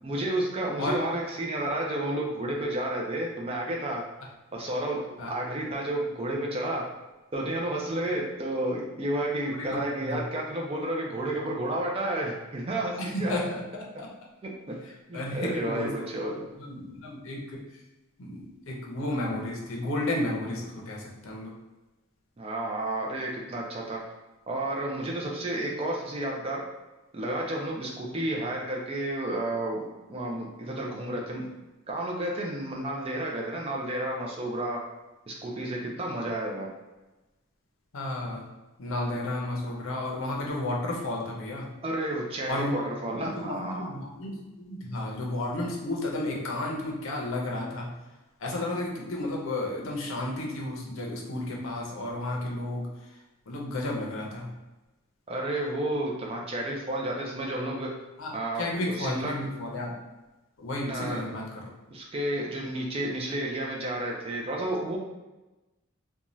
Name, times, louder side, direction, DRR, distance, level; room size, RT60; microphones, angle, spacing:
voice 1, 0.0-4.0 4.5-5.0 5.3-6.8 7.3-13.3 14.4-14.8 15.1-16.3 22.4-24.0 24.5-26.6 27.1-29.8 30.1-31.4 31.9-34.8 35.3-36.7 41.8-43.9 55.3-57.9 58.3-58.6 59.0-59.3 60.9-61.3 61.9-65.0, right 1 dB, 25° right, -1 dB, 0.4 m, -31 dB
voice 2, 9.5-10.2 13.0-13.6 14.0-14.1 15.1-17.6 18.2-21.5 37.9-38.4 38.8-41.7 42.5-42.7 43.2-47.9 48.4-52.9 53.5-54.5 58.2-58.3 58.6-59.9 60.6-61.7, left 1 dB, 70° left, -2 dB, 0.6 m, -32 dB
2.6 x 2.3 x 3.0 m, 1.1 s
head